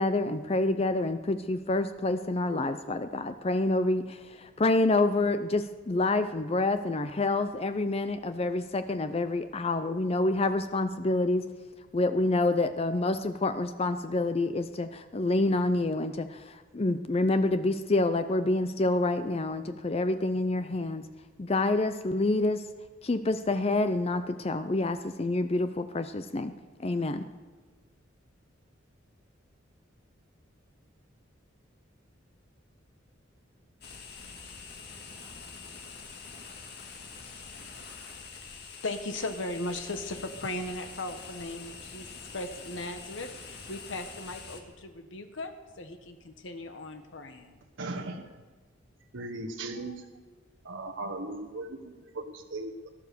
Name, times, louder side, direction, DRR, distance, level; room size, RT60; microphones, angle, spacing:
voice 1, 0.0-11.5 11.9-21.0 21.4-22.6 23.0-26.5 26.8-27.3, left 2 dB, 30° left, 10 dB, 0.5 m, -27 dB
sound 1, 33.8-44.6, left 5 dB, 55° left, 2.0 m, -45 dB
voice 2, 38.8-42.1 42.3-47.6, left 2 dB, 75° left, 7 dB, 1.1 m, -37 dB
voice 3, 47.8-48.3 49.1-50.0 50.6-52.9, right 2 dB, 80° right, 1 dB, 1.3 m, -38 dB
18.0 x 12.0 x 6.8 m, 1.4 s
head